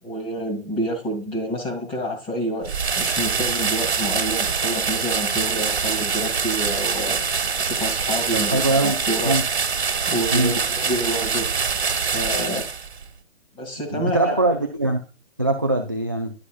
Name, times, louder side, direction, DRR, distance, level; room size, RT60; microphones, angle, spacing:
voice 1, 0.0-9.4 10.1-11.5 12.1-12.6 13.5-14.4, equal, 15° left, 3 dB, 2.3 m, -28 dB
sound 1, 2.6-13.0, right 5 dB, 70° right, 1.3 m, -24 dB
voice 2, 8.3-9.0 9.2-9.4 10.3-10.6 13.9-15.0 15.4-16.3, right 2 dB, 20° right, 2 dB, 0.3 m, -22 dB
11.0 x 8.1 x 2.3 m, 0.34 s
figure-of-eight pair, 145°, 34 cm